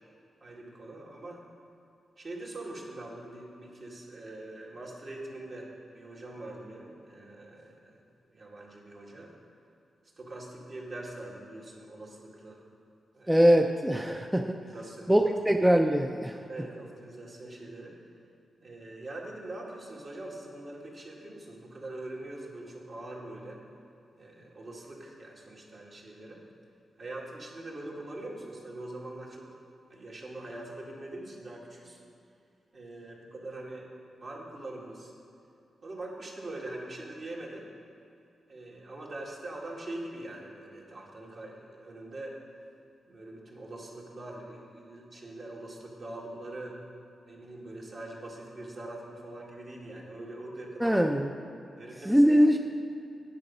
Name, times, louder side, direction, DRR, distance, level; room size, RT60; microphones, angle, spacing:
voice 1, 0.4-1.4 2.2-8.0 8.3-9.3 10.2-12.6 13.1-13.3 14.6-15.3 16.5-18.0 18.6-23.6 24.2-26.4 27.0-29.5 29.9-32.0 32.7-33.9 34.2-35.1 35.8-37.7 38.5-42.4 43.1-46.8 47.3-51.1 51.8-52.4, right 2 dB, 50° right, -3 dB, 2.0 m, -43 dB
voice 2, 13.3-14.6 15.1-16.4 50.8-51.3 52.1-52.6, equal, 5° right, 4 dB, 0.4 m, -22 dB
9.7 x 7.1 x 5.4 m, 2.7 s
cardioid pair, 85°, 0 cm